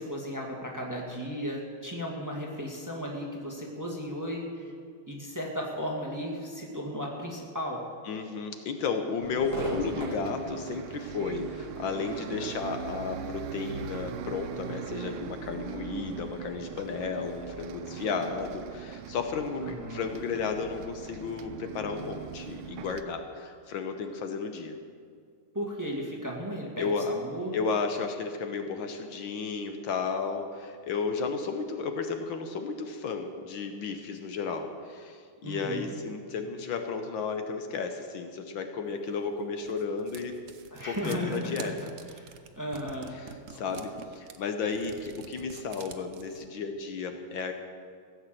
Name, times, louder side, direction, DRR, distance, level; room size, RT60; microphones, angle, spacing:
voice 1, 0.0-4.6 5.1-7.8 19.6-20.0 25.5-27.6 35.4-35.9 40.7-41.8 42.1-43.2, equal, 10° right, -1 dB, 1.6 m, -35 dB
voice 2, 8.0-24.8 26.8-27.1 27.5-40.4 40.8-41.8 43.1-47.5, left 5 dB, 70° left, 6 dB, 1.6 m, -33 dB
Bus, 9.2-23.0, right 8 dB, 80° right, 1.5 m, -40 dB
Crowd / Fireworks, 9.5-16.8, left 1 dB, 50° left, 3.7 m, -43 dB
sound 1, 39.2-46.4, right 7 dB, 60° right, 0.8 m, -47 dB
16.0 x 7.9 x 7.7 m, 2.2 s
omnidirectional pair, 2.3 m